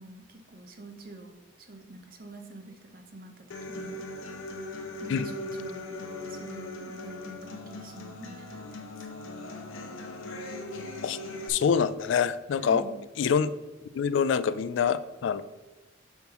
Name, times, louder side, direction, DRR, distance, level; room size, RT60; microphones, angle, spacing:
voice 1, 0.0-4.0 5.0-8.6 12.6-13.0, right 2 dB, 45° right, 4 dB, 0.9 m, -46 dB
Human voice / Acoustic guitar, 3.5-11.5, left 2 dB, 90° left, 0.9 m, -39 dB
voice 2, 11.5-12.8 13.2-13.5 13.9-15.4, left 6 dB, 65° left, 14 dB, 0.3 m, -25 dB
7.0 x 5.8 x 3.0 m, 1.2 s
head